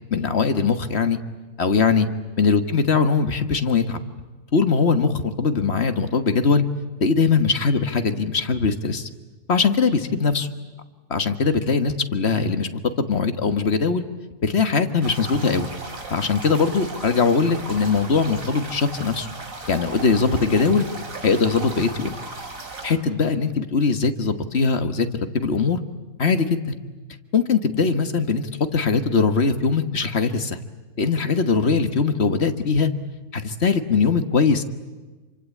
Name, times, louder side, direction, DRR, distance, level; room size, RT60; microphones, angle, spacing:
voice 1, 0.1-1.2 1.6-2.1 2.4-4.0 4.5-6.6 7.0-9.1 9.5-10.5 11.1-12.7 13.0-14.0 14.4-15.7 16.1-19.3 19.7-20.8 21.2-22.1 22.8-25.1 25.3-25.8 26.2-26.8 27.3-30.6 31.0-32.9 33.3-34.6, left 5 dB, 45° left, 9 dB, 1.7 m, -21 dB
sound 1, 15.0-23.0, right 3 dB, 55° right, 3.4 m, -36 dB
27.5 x 25.0 x 8.5 m, 1.3 s
omnidirectional pair, 1.7 m